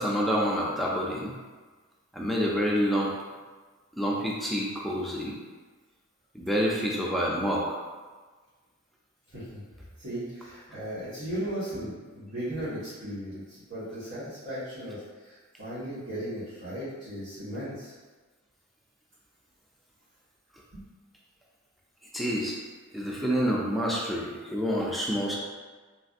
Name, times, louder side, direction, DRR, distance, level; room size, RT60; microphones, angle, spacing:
voice 1, 0.0-1.4 2.1-3.1 4.0-5.4 6.3-7.8 22.1-22.6 22.9-25.4, equal, ahead, -4 dB, 0.3 m, -28 dB
voice 2, 10.0-13.4 13.7-17.9 20.7-20.8, right 1 dB, 80° right, -15 dB, 1.3 m, -36 dB
3.2 x 2.6 x 2.5 m, 1.4 s
head